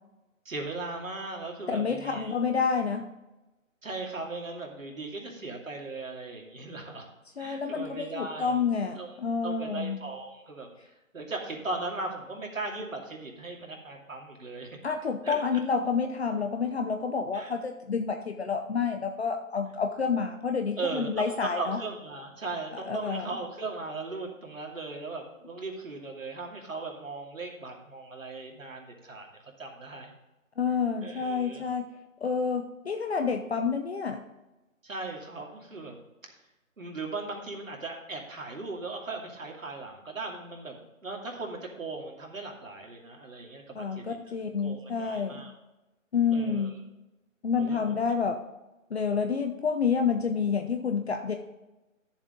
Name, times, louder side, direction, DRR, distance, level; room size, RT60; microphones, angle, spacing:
voice 1, 0.4-2.3 3.8-7.1 7.4-8.6 9.0-9.1 9.4-14.8 15.2-15.4 17.3-17.5 20.8-29.3 29.6-30.1 31.0-31.7 34.8-36.0 36.8-44.2 44.6-45.5 46.3-46.7 47.6-47.9, right 3 dB, 75° right, 0 dB, 2.6 m, -38 dB
voice 2, 1.7-3.1 7.4-10.0 14.8-21.8 22.9-23.4 30.6-31.9 32.2-34.2 43.7-45.4 46.1-46.8 47.4-48.4 48.9-51.3, left 5 dB, 50° left, 5 dB, 0.9 m, -29 dB
11.5 x 7.2 x 3.8 m, 1.0 s
figure-of-eight pair, 155°, 40 cm